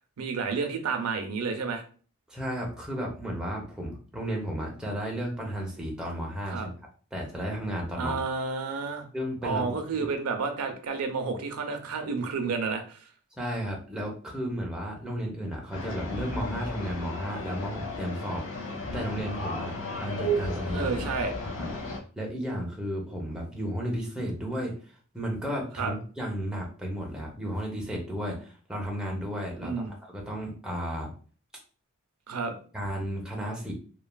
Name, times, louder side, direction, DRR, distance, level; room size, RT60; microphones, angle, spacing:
voice 1, 0.2-1.8 6.5-6.7 8.0-9.1 9.4-13.0 20.7-21.3 25.8-25.9 29.6-29.9 32.3-32.5, right 4 dB, 90° right, 6 dB, 0.5 m, -30 dB
voice 2, 2.3-6.7 7.1-8.2 9.1-10.1 13.4-20.9 21.6-21.7 22.2-31.1 32.7-33.7, equal, 5° right, -2 dB, 0.6 m, -33 dB
sound 1, 15.7-22.0, equal, 60° left, 0.6 m, -34 dB
3.1 x 2.3 x 2.2 m, 0.40 s
head